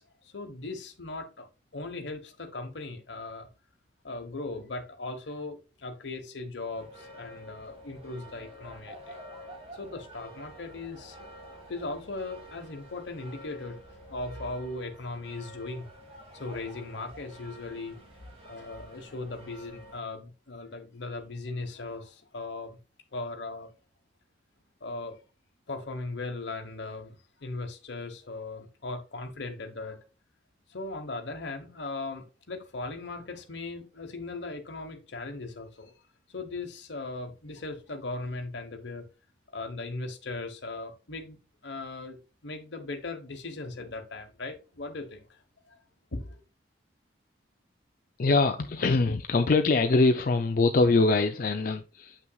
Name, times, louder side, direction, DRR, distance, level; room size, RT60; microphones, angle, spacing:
voice 1, 0.0-1.5 1.7-3.5 4.0-9.2 9.7-13.8 14.1-15.9 16.3-18.0 18.4-22.8 23.1-23.7 24.8-25.2 25.7-30.0 30.7-35.9 36.3-39.1 39.5-45.4 45.7-45.8 46.1-46.4, left 3 dB, 75° left, 1.1 m, -38 dB
sound 1, 6.7-20.0, equal, 30° right, 1.6 m, -49 dB
voice 2, 48.2-52.2, left 3 dB, 50° left, 0.4 m, -23 dB
7.8 x 5.8 x 2.3 m
head